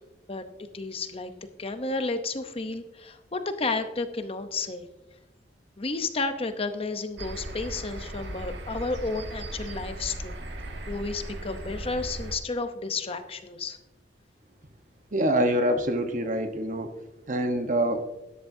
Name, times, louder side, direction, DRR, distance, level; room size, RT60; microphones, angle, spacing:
voice 1, 0.7-1.3 1.6-4.8 5.8-10.3 10.9-13.8, left 3 dB, 35° left, 8 dB, 0.7 m, -32 dB
sound 1, 7.2-12.4, right 1 dB, 80° right, 1.3 m, -37 dB
voice 2, 15.1-16.9 17.3-18.0, right 1 dB, 45° right, 6 dB, 1.0 m, -25 dB
13.0 x 11.5 x 2.7 m, 1.0 s
head